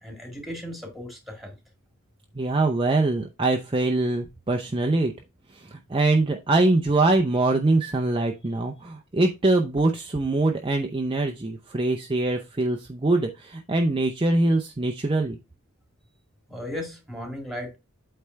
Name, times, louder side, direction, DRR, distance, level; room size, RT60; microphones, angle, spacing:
voice 1, 0.0-1.6 16.5-17.7, left 1 dB, ahead, 1.9 m, -36 dB
voice 2, 2.4-5.1 5.5-15.4, right 2 dB, 25° right, 0.5 m, -23 dB
8.4 x 3.3 x 4.4 m
head